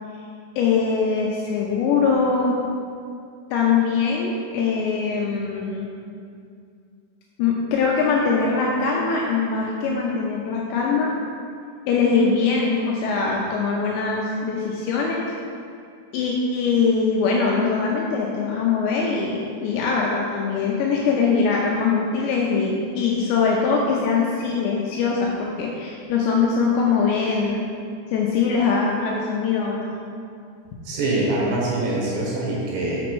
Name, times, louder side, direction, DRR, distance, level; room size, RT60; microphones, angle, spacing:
voice 1, 0.6-2.6 3.5-5.9 7.4-11.1 11.9-15.3 16.1-27.7 28.1-30.0, left 5 dB, 85° left, -2 dB, 2.6 m, -22 dB
voice 2, 30.8-33.0, right 2 dB, 70° right, -5 dB, 3.3 m, -24 dB
6.2 x 6.0 x 4.6 m, 2.4 s
omnidirectional pair, 5.6 m